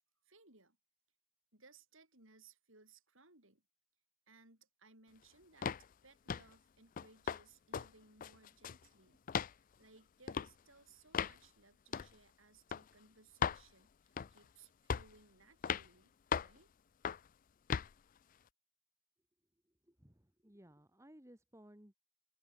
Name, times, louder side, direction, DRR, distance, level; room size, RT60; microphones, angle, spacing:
voice 1, 0.3-0.8 1.5-3.6 4.3-5.8 6.0-9.2 9.5-16.7, right 3 dB, 65° right, 7.1 m, -64 dB
sound 1, 5.6-5.9 6.3-6.5 7.0-7.4 7.7-7.9 8.2-8.8 9.3-9.5 10.3-10.5 11.1-11.4 11.9-12.1 12.7-12.8 13.4-13.6 14.2-14.4 14.9-15.2 15.6-15.9 16.3-16.6 17.0-17.3 17.7-17.9, left 7 dB, 40° left, 0.3 m, -37 dB
voice 2, 19.9-22.0, equal, 15° right, 1.7 m, -60 dB
open air
head